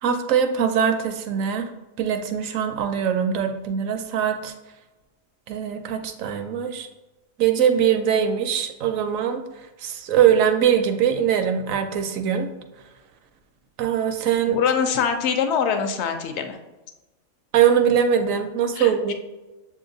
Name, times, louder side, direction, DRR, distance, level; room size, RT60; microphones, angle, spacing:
voice 1, 0.0-1.7 2.0-4.5 5.5-6.9 7.4-9.4 9.8-12.5 13.8-14.6 17.5-19.1, right 8 dB, 75° right, 7 dB, 0.9 m, -22 dB
voice 2, 14.5-16.6 18.7-19.1, left 7 dB, 65° left, 6 dB, 0.7 m, -24 dB
7.2 x 2.8 x 2.6 m, 1.1 s
omnidirectional pair, 1.5 m